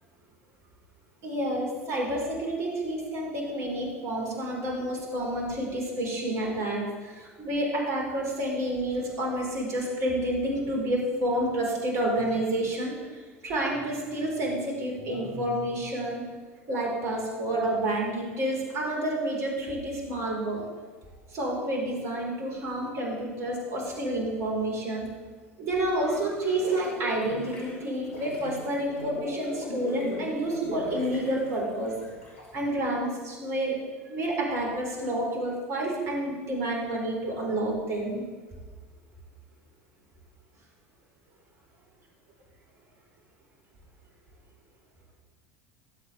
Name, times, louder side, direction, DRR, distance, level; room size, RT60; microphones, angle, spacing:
voice 1, 1.2-16.3 16.7-20.7 21.3-25.1 25.6-31.9 32.5-33.8 34.1-38.2, right 1 dB, 45° right, -2 dB, 4.8 m, -29 dB
sound 1, 25.8-32.6, equal, 70° left, 4.7 m, -39 dB
22.0 x 8.4 x 3.6 m, 1.5 s
figure-of-eight pair, 75°, 8 cm